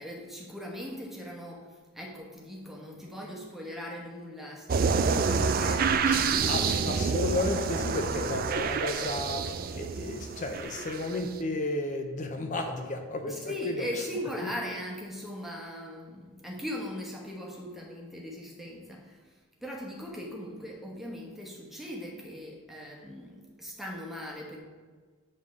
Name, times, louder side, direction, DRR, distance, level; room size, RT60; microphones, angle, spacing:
voice 1, 0.0-6.6 13.3-24.6, equal, ahead, -2 dB, 1.0 m, -39 dB
sound 1, 4.7-11.3, right 5 dB, 40° right, 0.3 m, -28 dB
voice 2, 6.0-9.5 9.8-14.0 14.4-14.5, left 2 dB, 35° left, 5 dB, 0.5 m, -33 dB
7.5 x 3.6 x 6.1 m, 1.5 s
head